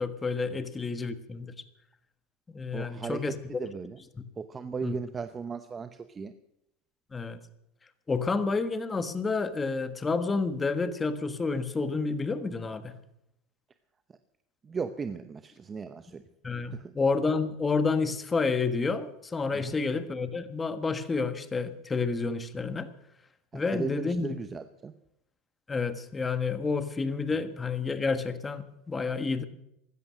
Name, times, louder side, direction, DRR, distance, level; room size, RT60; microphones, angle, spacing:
voice 1, 0.0-1.5 2.5-3.4 4.8-4.9 7.1-7.4 8.1-12.9 16.4-22.9 23.5-24.3 25.7-29.5, left 4 dB, 20° left, 10 dB, 1.4 m, -29 dB
voice 2, 2.7-4.0 4.4-6.3 14.6-16.2 16.7-16.9 19.5-19.8 23.5-24.9, right 5 dB, 25° right, 10 dB, 0.8 m, -37 dB
15.5 x 12.5 x 6.4 m, 0.81 s
supercardioid pair, 110°, 0 cm